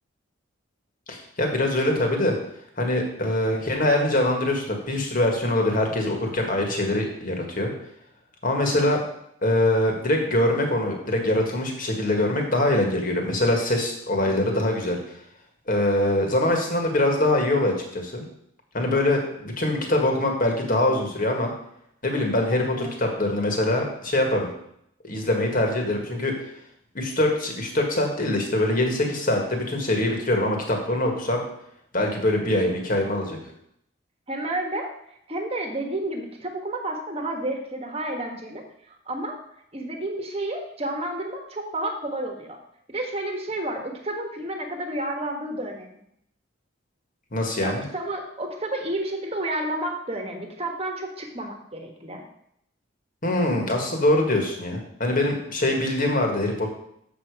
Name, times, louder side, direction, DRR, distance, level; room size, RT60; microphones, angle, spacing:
voice 1, 1.1-2.4 2.8-7.7 8.4-9.0 9.4-15.0 15.7-18.2 18.7-21.5 22.0-24.5 25.0-26.3 27.0-31.4 31.9-33.4 47.3-47.8 53.2-56.7, left 1 dB, 40° left, 2 dB, 1.8 m, -23 dB
voice 2, 22.5-22.9 34.3-34.9 35.3-39.4 39.7-42.6 42.9-46.0 47.6-52.2, right 1 dB, 30° right, 3 dB, 1.4 m, -31 dB
7.4 x 6.8 x 4.8 m, 0.73 s
head